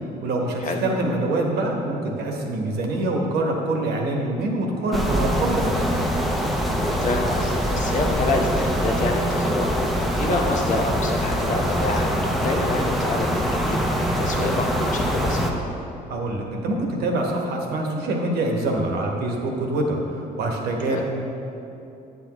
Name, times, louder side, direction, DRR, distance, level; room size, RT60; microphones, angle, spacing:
voice 1, 0.0-5.8 16.1-21.0, right 2 dB, 70° right, 0 dB, 1.2 m, -25 dB
sound 1, 4.9-15.5, equal, ahead, 0.7 m, -24 dB
voice 2, 7.0-9.7 10.1-15.5 20.9-21.0, left 2 dB, 50° left, 2 dB, 1.0 m, -27 dB
8.5 x 8.1 x 3.0 m, 2.8 s
cardioid pair, 110°, 17 cm